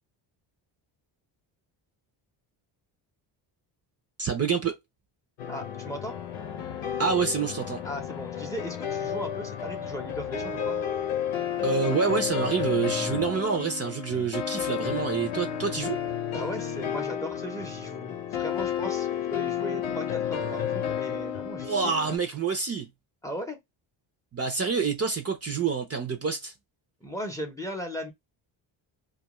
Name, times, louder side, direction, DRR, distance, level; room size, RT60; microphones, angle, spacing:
voice 1, 4.2-4.8 7.0-7.8 11.6-16.0 21.6-22.9 24.3-26.5, right 5 dB, 30° right, 0.6 m, -27 dB
sound 1, 5.4-22.2, left 9 dB, 85° left, 0.8 m, -32 dB
voice 2, 5.5-6.2 7.8-10.8 16.3-21.7 23.2-23.6 27.0-28.1, equal, 5° left, 0.7 m, -37 dB
2.4 x 2.2 x 3.0 m
cardioid pair, 90°, 49 cm